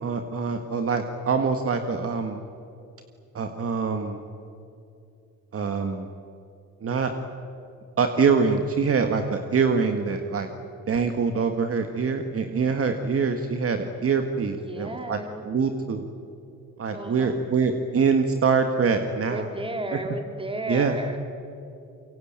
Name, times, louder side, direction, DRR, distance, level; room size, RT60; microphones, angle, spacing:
voice 1, 0.0-2.4 3.3-4.2 5.5-6.1 6.8-7.1 8.0-10.5 10.9-15.2 15.5-16.1 16.8-19.5 19.9-20.0 20.7-21.0, right 5 dB, 50° right, 6 dB, 1.8 m, -24 dB
voice 2, 14.6-15.5 16.9-17.4 19.2-21.2, right 1 dB, 15° right, 4 dB, 4.3 m, -33 dB
26.0 x 23.5 x 8.9 m, 2.8 s
cardioid pair, 90°, 30 cm